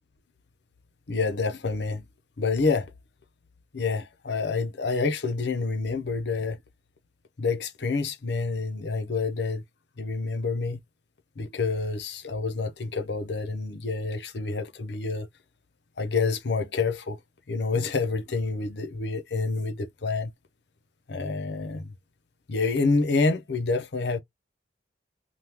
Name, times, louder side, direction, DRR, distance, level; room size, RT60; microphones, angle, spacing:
voice 1, 1.1-2.0 2.4-2.9 3.7-6.6 7.4-9.6 10.0-10.8 11.4-15.3 16.0-17.2 17.5-20.3 21.1-21.9 22.5-24.2, left 4 dB, 65° left, 0.7 m, -28 dB
3.5 x 2.4 x 2.9 m
head